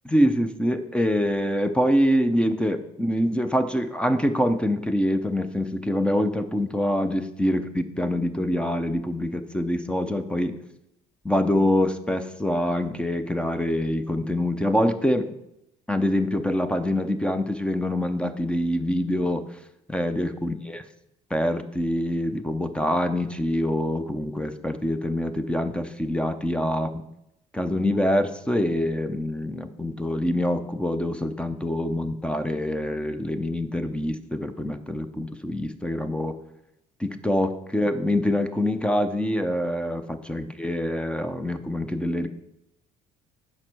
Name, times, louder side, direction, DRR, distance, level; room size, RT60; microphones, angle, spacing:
voice 1, 0.0-10.6 11.2-15.3 15.9-19.6 19.9-20.8 21.3-27.0 27.5-36.4 37.0-42.3, left 1 dB, 5° left, 10 dB, 0.6 m, -25 dB
7.6 x 5.4 x 6.1 m, 0.83 s
cardioid pair, 110°, 17 cm